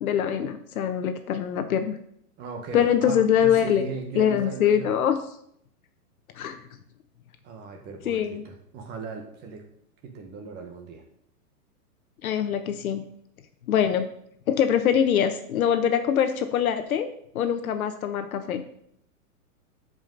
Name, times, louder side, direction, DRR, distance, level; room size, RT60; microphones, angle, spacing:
voice 1, 0.0-2.0 2.7-3.8 4.1-5.2 6.4-6.6 8.0-8.4 12.2-13.0 13.7-14.1 14.5-17.1 17.3-18.6, left 9 dB, 65° left, 8 dB, 1.1 m, -23 dB
voice 2, 2.4-5.0 7.4-9.6 10.0-11.0, right 5 dB, 20° right, 2 dB, 1.3 m, -37 dB
13.0 x 5.2 x 3.9 m, 0.70 s
hypercardioid pair, 155°, 45 cm